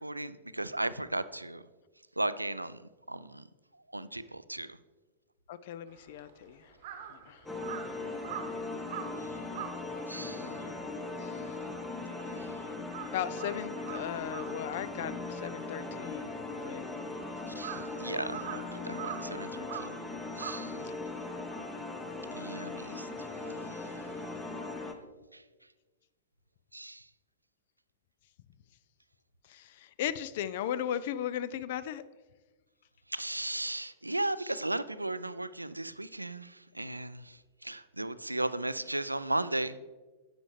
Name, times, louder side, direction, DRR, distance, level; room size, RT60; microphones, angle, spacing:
voice 1, 0.0-1.6 2.2-2.8 3.1-3.4 3.9-4.8 10.1-10.5 12.4-12.6 17.5-19.9 20.4-20.8 22.4-23.1 23.8-23.9 25.3-25.4 26.7-27.1 33.1-39.8, right 2 dB, 85° right, 15 dB, 0.3 m, -36 dB
voice 2, 5.5-6.7 7.1-7.5 10.1-11.4 13.1-16.3 16.6-16.9 20.7-21.0 29.4-32.0, left 10 dB, 50° left, 16 dB, 0.4 m, -37 dB
Crow, 5.9-12.4 12.7-21.3, right 9 dB, 50° right, 0.9 m, -45 dB
sound 1, 7.5-24.9, left 3 dB, 10° left, 0.9 m, -39 dB
10.0 x 8.0 x 3.2 m, 1.3 s
figure-of-eight pair, 100°, 0 cm